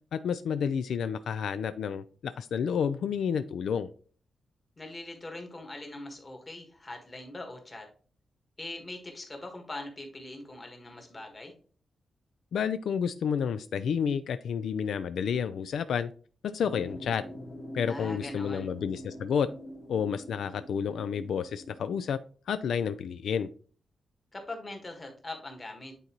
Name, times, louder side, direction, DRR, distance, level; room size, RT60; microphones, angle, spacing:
voice 1, 0.1-3.9 12.5-16.1 16.4-17.2 17.7-19.5 19.9-22.2 22.5-23.5, left 7 dB, 80° left, 12 dB, 0.3 m, -30 dB
voice 2, 4.8-7.9 8.6-11.5 17.9-18.7 24.3-25.9, left 2 dB, 20° left, 3 dB, 1.5 m, -42 dB
sound 1, 16.6-22.1, equal, 40° left, 1.3 m, -45 dB
9.0 x 4.0 x 2.9 m, 0.41 s
wide cardioid pair, 160°, 0 cm